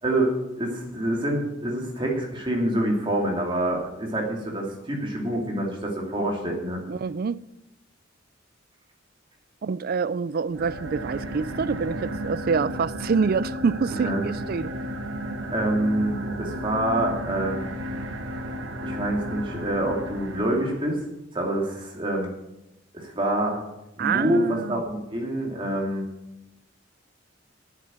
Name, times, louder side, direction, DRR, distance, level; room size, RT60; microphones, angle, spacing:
voice 1, 0.0-6.8 13.9-14.2 15.5-17.6 18.8-21.0 21.3-22.3 22.9-23.6 24.0-26.0, right 1 dB, 25° right, 2.5 m, -26 dB
voice 2, 6.9-7.4 9.6-14.7 24.0-24.8, right 5 dB, 50° right, 0.4 m, -26 dB
sound 1, 10.5-21.0, equal, 80° right, 1.3 m, -33 dB
10.0 x 7.4 x 7.9 m
head